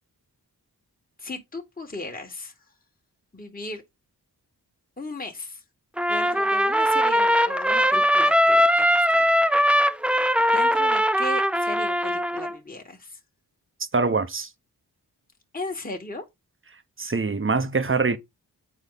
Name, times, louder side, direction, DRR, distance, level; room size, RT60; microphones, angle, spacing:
voice 1, 1.2-2.5 3.3-3.8 5.0-5.6 6.1-9.2 9.6-9.8 10.5-13.2 15.5-16.3, left 2 dB, 20° left, 1.6 m, -36 dB
Trumpet, 6.0-12.6, equal, 5° right, 0.4 m, -21 dB
voice 2, 13.9-14.5 17.0-18.2, right 4 dB, 30° right, 1.0 m, -23 dB
8.5 x 4.3 x 4.0 m
cardioid pair, 60°, 39 cm